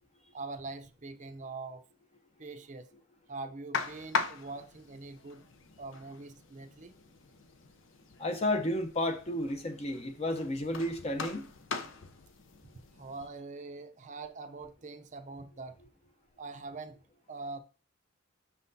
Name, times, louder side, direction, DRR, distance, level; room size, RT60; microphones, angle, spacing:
voice 1, 0.3-1.8 2.4-2.9 3.3-5.4 5.8-7.0 13.0-15.7 16.4-17.0 17.3-17.6, right 3 dB, 40° right, 0.6 m, -43 dB
sound 1, 3.7-13.3, left 5 dB, 70° left, 0.7 m, -41 dB
voice 2, 8.2-11.5, left 1 dB, 30° left, 0.7 m, -32 dB
6.3 x 5.7 x 2.7 m
head